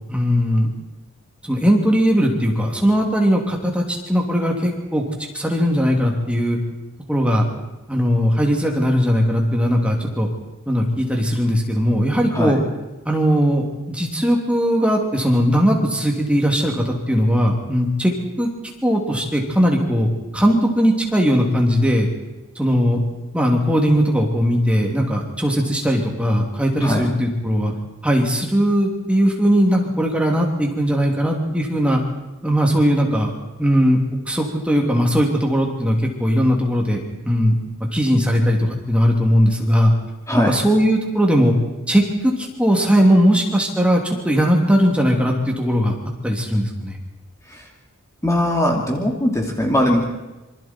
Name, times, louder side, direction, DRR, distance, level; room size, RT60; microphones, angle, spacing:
voice 1, 0.1-0.7 1.4-5.0 5.3-6.6 7.1-7.5 7.9-10.3 10.7-12.6 13.0-18.1 18.4-18.5 18.8-22.1 22.6-23.0 23.3-27.7 28.0-32.0 32.4-33.3 33.6-34.0 34.3-37.5 37.9-39.9 40.5-41.5 41.9-45.9 46.2-47.0, equal, 5° right, 0 dB, 2.9 m, -19 dB
voice 2, 40.3-40.6 47.5-47.7 48.2-50.0, left 1 dB, 15° left, 0 dB, 2.6 m, -20 dB
26.5 x 25.0 x 4.5 m, 1.1 s
head